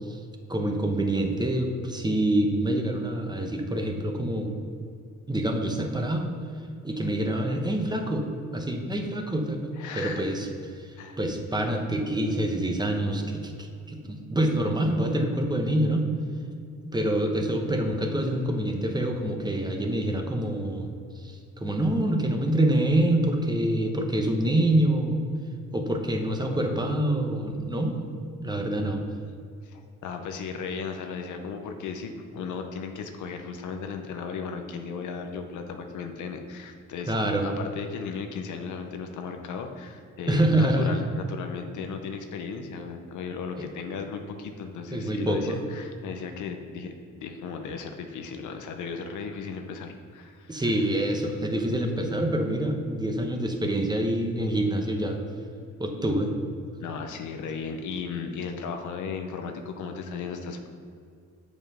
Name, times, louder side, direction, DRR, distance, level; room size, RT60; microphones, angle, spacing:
voice 1, 0.5-4.5 5.3-6.3 6.8-8.3 8.5-10.5 11.2-13.5 13.9-16.1 16.8-20.9 21.2-25.2 25.7-27.9 28.4-29.0 37.1-37.5 40.3-40.9 43.6-43.7 44.9-45.6 50.5-55.2 55.8-56.3, right 1 dB, 15° right, 3 dB, 1.0 m, -26 dB
voice 2, 9.8-10.3 11.0-11.2 29.6-37.1 37.4-50.9 56.8-60.7, left 5 dB, 75° left, 5 dB, 0.8 m, -36 dB
7.2 x 5.3 x 4.9 m, 2.4 s
cardioid pair, 90°, 30 cm